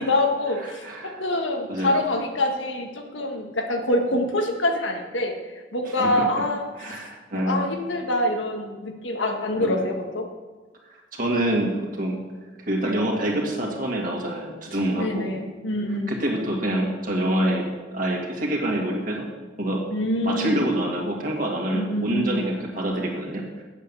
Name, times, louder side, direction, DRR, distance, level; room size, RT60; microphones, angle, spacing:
voice 1, 0.0-5.3 5.7-7.1 7.4-10.3 15.0-16.1 19.9-20.7 21.7-22.5, left 1 dB, 80° left, 3 dB, 1.6 m, -25 dB
voice 2, 0.6-1.2 1.7-1.9 5.8-6.3 6.8-7.7 9.6-9.9 10.8-12.2 12.6-15.4 16.1-19.3 19.6-19.8 20.2-23.6, right 1 dB, 45° right, -1 dB, 2.2 m, -26 dB
9.1 x 8.1 x 6.9 m, 1.3 s
head